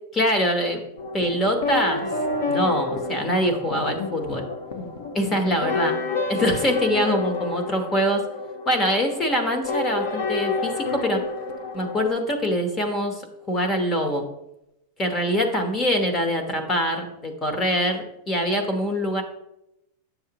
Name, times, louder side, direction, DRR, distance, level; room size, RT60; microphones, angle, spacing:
voice 1, 0.1-0.8 1.1-2.1 2.5-4.5 5.1-6.0 6.3-8.2 8.6-11.2 11.7-13.2 13.5-14.3 15.0-19.2, equal, 15° left, 4 dB, 1.0 m, -24 dB
sound 1, 1.0-12.1, left 3 dB, 80° left, 1.0 m, -29 dB
9.9 x 7.1 x 2.9 m, 0.87 s
supercardioid pair, 165°, 0 cm